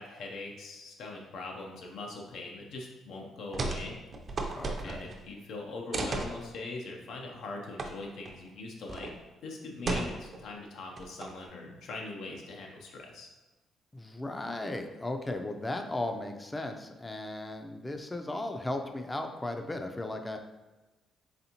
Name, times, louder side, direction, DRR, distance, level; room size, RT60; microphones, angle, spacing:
voice 1, 0.0-4.0 4.8-9.1 9.4-13.3, left 3 dB, 80° left, 0 dB, 0.6 m, -41 dB
sound 1, 3.5-5.2 5.9-6.3 7.8-7.9 8.2-8.4 8.9-9.1 9.8-10.4 11.0-11.5, right 2 dB, 45° right, 0.5 m, -34 dB
voice 2, 4.5-5.1 13.9-20.4, left 2 dB, 15° left, 5 dB, 0.4 m, -36 dB
4.1 x 3.4 x 2.9 m, 1.1 s
cardioid pair, 90°, 0 cm